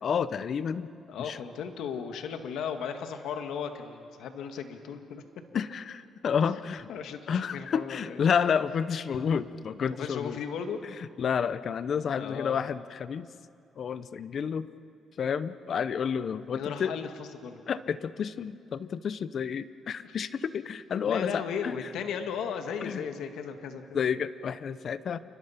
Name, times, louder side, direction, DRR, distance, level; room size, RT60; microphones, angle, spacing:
voice 1, 0.0-0.9 1.2-1.4 5.5-6.9 7.3-10.4 11.0-13.3 13.8-14.7 15.2-16.9 17.7-21.7 22.8-23.0 23.9-25.2, left 7 dB, 55° left, 14 dB, 0.8 m, -30 dB
voice 2, 1.1-5.2 6.9-8.2 9.9-10.8 12.1-12.6 16.5-17.6 21.0-24.1, left 7 dB, 80° left, 6 dB, 1.9 m, -36 dB
29.0 x 24.5 x 5.8 m, 2.4 s
cardioid pair, 90°, 0 cm